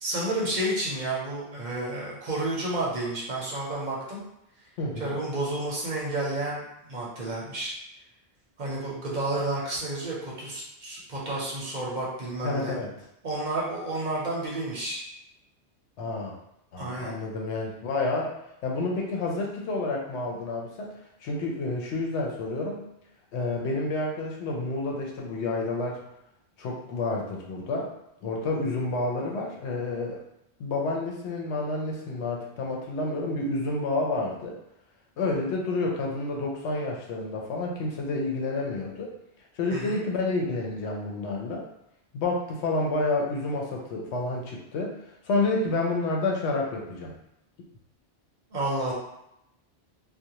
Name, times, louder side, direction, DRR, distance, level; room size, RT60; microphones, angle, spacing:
voice 1, 0.0-4.2 5.0-7.7 8.6-12.7 13.2-15.0 16.8-17.1 39.7-40.0 48.5-48.9, right 2 dB, 50° right, -5 dB, 0.7 m, -31 dB
voice 2, 4.8-5.2 12.4-12.9 16.0-16.3 16.7-18.4 18.6-22.8 23.3-26.0 26.6-27.9 28.2-30.2 30.6-34.6 35.2-39.1 39.5-41.6 42.1-44.9 45.3-47.1, left 2 dB, 90° left, -1 dB, 0.9 m, -29 dB
2.4 x 2.1 x 2.8 m, 0.82 s
omnidirectional pair, 1.1 m